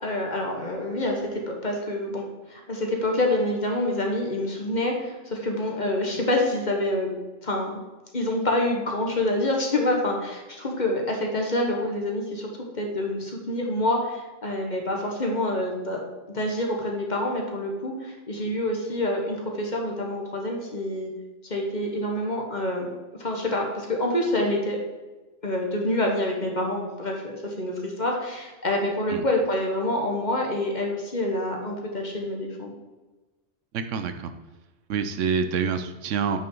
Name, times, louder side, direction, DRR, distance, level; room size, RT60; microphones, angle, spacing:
voice 1, 0.0-7.1 7.4-7.8 8.1-12.5 12.7-16.0 16.3-21.1 21.5-24.8 25.4-32.7, left 1 dB, 40° left, 1 dB, 1.5 m, -27 dB
voice 2, 33.7-34.3 34.9-36.4, right 6 dB, 80° right, 9 dB, 1.0 m, -27 dB
8.8 x 6.1 x 3.8 m, 1.2 s
omnidirectional pair, 1.3 m